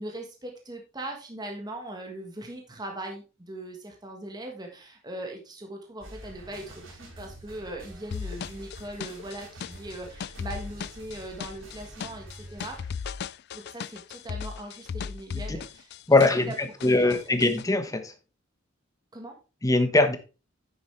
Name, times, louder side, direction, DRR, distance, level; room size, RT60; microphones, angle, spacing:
voice 1, 0.0-12.8 13.5-17.2 19.1-19.4, right 1 dB, 20° right, 1.5 m, -40 dB
sound 1, 6.0-12.9, right 1 dB, 90° right, 4.5 m, -47 dB
sound 2, 8.1-16.5 16.8-17.6, left 6 dB, 55° left, 0.3 m, -36 dB
voice 2, 16.1-18.1 19.6-20.2, left 2 dB, 15° left, 1.1 m, -22 dB
10.0 x 7.0 x 3.3 m
head